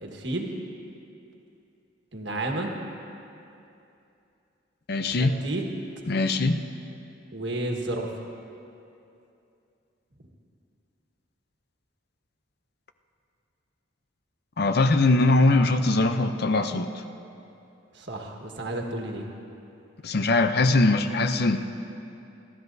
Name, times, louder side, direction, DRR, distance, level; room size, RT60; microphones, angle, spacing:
voice 1, 0.0-0.6 2.1-2.7 5.0-5.7 7.3-8.1 17.9-19.3, right 2 dB, 60° right, 1 dB, 1.6 m, -31 dB
voice 2, 4.9-5.4 6.1-6.6 14.6-16.9 20.0-21.6, left 2 dB, 50° left, 8 dB, 0.6 m, -21 dB
29.0 x 12.5 x 2.7 m, 2.7 s
head